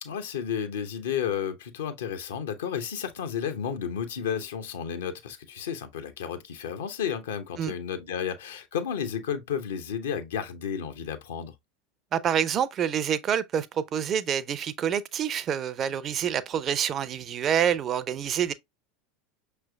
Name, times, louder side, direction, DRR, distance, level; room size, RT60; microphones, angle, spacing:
voice 1, 0.0-11.5, left 8 dB, 70° left, 0.7 m, -32 dB
voice 2, 12.1-18.5, right 9 dB, 35° right, 0.5 m, -27 dB
6.0 x 3.3 x 2.2 m
figure-of-eight pair, 80°, 0 cm